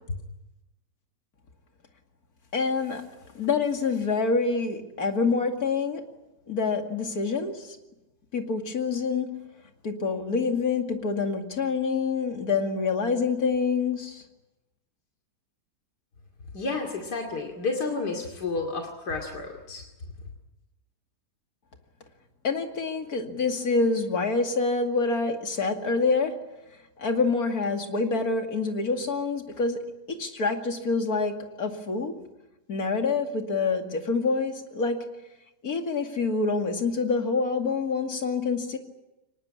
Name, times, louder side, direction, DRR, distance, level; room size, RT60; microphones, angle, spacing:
voice 1, 2.5-3.1 3.3-6.1 6.5-7.8 8.3-9.5 9.8-14.2 22.4-26.5 27.0-32.3 32.7-35.1 35.6-38.8, left 4 dB, 65° left, 5 dB, 2.9 m, -26 dB
voice 2, 16.5-19.8, left 3 dB, 90° left, 2 dB, 3.1 m, -31 dB
24.0 x 20.0 x 9.8 m, 0.97 s
omnidirectional pair, 1.7 m